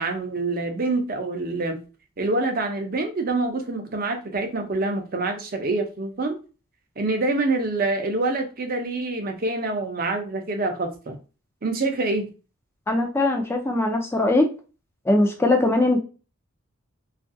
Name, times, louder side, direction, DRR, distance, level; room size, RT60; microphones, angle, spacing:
voice 1, 0.0-1.8 2.2-6.4 7.0-11.2 11.6-12.3, right 2 dB, 40° right, 0.5 m, -26 dB
voice 2, 12.9-14.5 15.1-16.0, left 2 dB, 10° left, 0.4 m, -20 dB
2.8 x 2.4 x 2.6 m
head